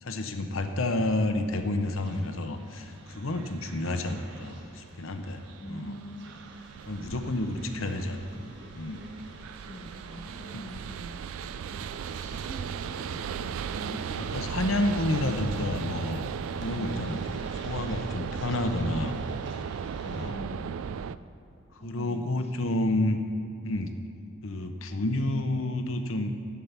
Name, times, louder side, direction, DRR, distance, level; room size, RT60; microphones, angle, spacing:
voice 1, 0.0-5.4 5.7-5.9 6.9-8.3 8.7-9.0 10.5-10.6 11.7-11.8 14.2-16.2 16.6-17.4 17.6-19.2 20.0-20.3 21.7-23.2 23.6-23.9 24.4-26.3, left 1 dB, 75° left, 7 dB, 0.9 m, -30 dB
sound 1, 1.5-21.2, right 7 dB, 80° right, 0.3 m, -37 dB
sound 2, 1.9-20.3, right 2 dB, 60° right, 1.7 m, -48 dB
voice 2, 5.6-6.3 9.6-11.5 11.9-15.3 16.7-17.2 20.2-20.9 21.8-22.5 22.8-23.1, equal, 30° left, 0 dB, 1.2 m, -44 dB
11.5 x 8.4 x 5.8 m, 2.8 s
head